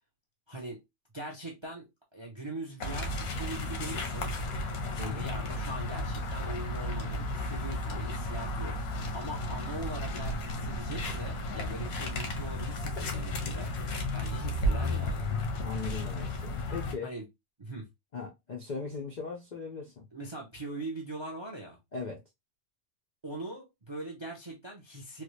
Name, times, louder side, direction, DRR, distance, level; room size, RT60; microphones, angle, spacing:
voice 1, 0.5-0.8 1.1-1.9 2.1-4.3 5.0-15.3 17.0-17.3 17.6-17.9 20.1-21.8 23.2-25.2, right 2 dB, 35° right, 0.4 m, -41 dB
sound 1, 2.8-16.9, left 1 dB, 85° left, 1.3 m, -33 dB
voice 2, 5.0-5.3 15.6-17.1 18.1-20.1 21.9-22.2, left 5 dB, 65° left, 0.4 m, -38 dB
3.3 x 2.3 x 3.1 m
omnidirectional pair, 1.6 m